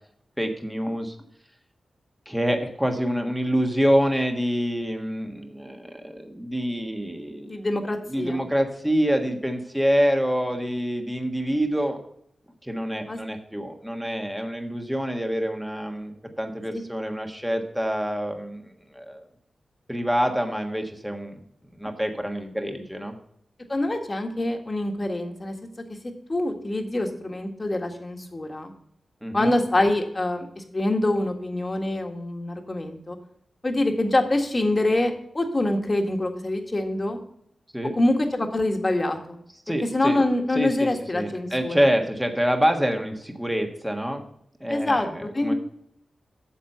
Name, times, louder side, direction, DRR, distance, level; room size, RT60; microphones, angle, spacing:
voice 1, 0.4-1.1 2.2-7.6 8.1-12.0 12.6-19.3 19.9-21.4 21.8-23.1 29.2-29.5 37.7-37.9 39.7-40.2 40.5-44.2 44.6-45.5, equal, 5° right, 4 dB, 1.5 m, -26 dB
voice 2, 7.4-8.4 13.1-13.2 23.7-25.5 26.3-28.7 29.3-33.2 33.6-37.2 38.0-39.4 39.9-41.8 44.7-45.1 45.3-45.5, left 1 dB, 30° left, 4 dB, 1.7 m, -25 dB
8.6 x 7.3 x 5.6 m, 0.70 s
wide cardioid pair, 80°, 0 cm